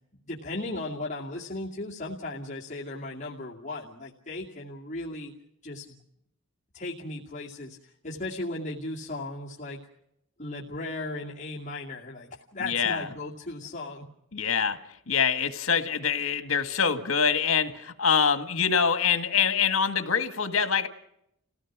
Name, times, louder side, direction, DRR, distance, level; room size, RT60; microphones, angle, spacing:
voice 1, 0.2-5.3 5.6-6.0 6.7-9.8 10.4-14.1, left 2 dB, 35° left, -6 dB, 2.3 m, -36 dB
voice 2, 12.6-13.1 14.3-14.8 15.1-20.9, left 6 dB, 70° left, 9 dB, 1.7 m, -25 dB
29.0 x 17.0 x 6.1 m, 0.79 s
head